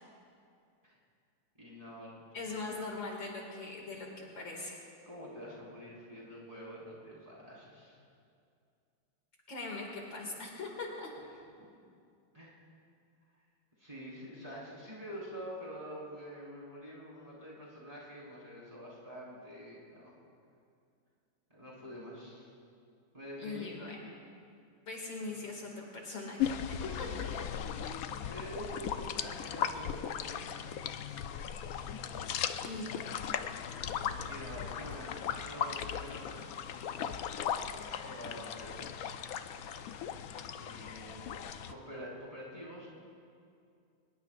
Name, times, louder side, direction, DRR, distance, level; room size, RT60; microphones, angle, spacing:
voice 1, 1.6-2.2 2.6-2.7 3.9-4.0 5.1-8.0 12.3-12.5 13.8-20.1 21.5-22.5 23.1-23.7 25.2-25.3 28.3-30.5 31.2-31.6 34.3-36.8 37.8-38.8 40.5-42.9, equal, 15° right, -7 dB, 4.7 m, -47 dB
voice 2, 2.3-4.8 9.5-11.1 23.4-24.1 24.9-27.1 27.3-27.4 32.6-33.1, left 3 dB, 65° left, -1 dB, 3.0 m, -41 dB
sound 1, 26.4-41.7, left 8 dB, 90° left, 0.7 m, -37 dB
24.0 x 21.5 x 2.5 m, 2.4 s
omnidirectional pair, 2.3 m